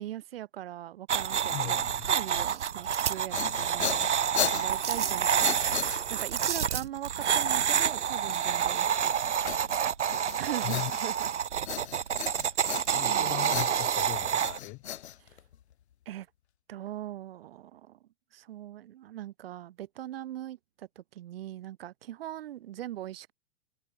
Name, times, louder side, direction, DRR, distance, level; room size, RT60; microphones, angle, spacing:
voice 1, 0.0-4.0 4.4-5.5 6.1-9.9 10.4-11.3 13.0-13.3 15.2-15.4 16.0-16.3 16.7-23.3, right 13 dB, 55° right, 6.8 m, -41 dB
sound 1, 1.1-14.6, right 8 dB, 80° right, 6.5 m, -28 dB
voice 2, 1.5-2.1 10.6-10.9 12.9-14.8, left 23 dB, 30° left, 5.1 m, -38 dB
sound 2, 3.0-6.4 9.5-11.3 11.6-13.2 13.5-15.7, left 10 dB, 65° left, 4.1 m, -36 dB
open air
hypercardioid pair, 155°, 35 cm